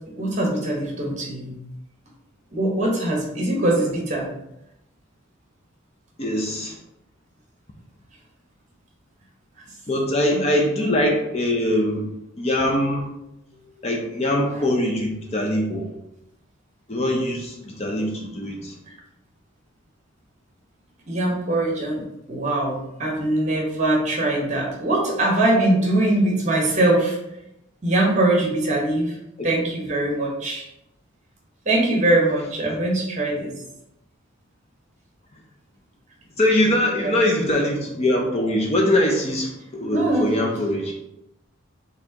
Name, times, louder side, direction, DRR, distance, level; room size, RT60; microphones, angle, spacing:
voice 1, 0.1-1.5 2.5-4.3 10.3-10.4 10.8-10.9 21.1-22.0 22.3-27.2 27.8-29.1 29.4-30.7 31.6-33.5 37.0-37.2 39.9-40.3, right 1 dB, 35° right, -2 dB, 1.1 m, -22 dB
voice 2, 6.2-6.8 9.9-12.1 12.4-13.1 13.8-15.9 16.9-18.8 29.4-29.5 36.4-40.9, left 1 dB, 30° left, 1 dB, 0.5 m, -22 dB
4.4 x 3.6 x 2.8 m, 0.85 s
head